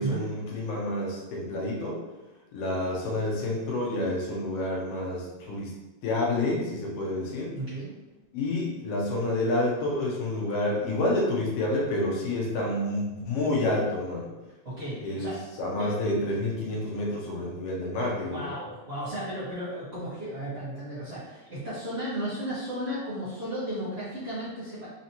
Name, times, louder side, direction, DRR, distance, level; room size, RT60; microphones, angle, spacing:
voice 1, 0.0-2.0 2.5-5.7 6.0-7.5 8.3-14.3 15.0-15.3 15.6-18.5, left 1 dB, 70° left, -2 dB, 1.7 m, -29 dB
voice 2, 7.5-7.9 14.6-15.4 15.7-15.9 18.3-24.9, right 1 dB, 50° right, -11 dB, 0.8 m, -34 dB
5.0 x 2.8 x 2.8 m, 1.1 s
omnidirectional pair, 3.3 m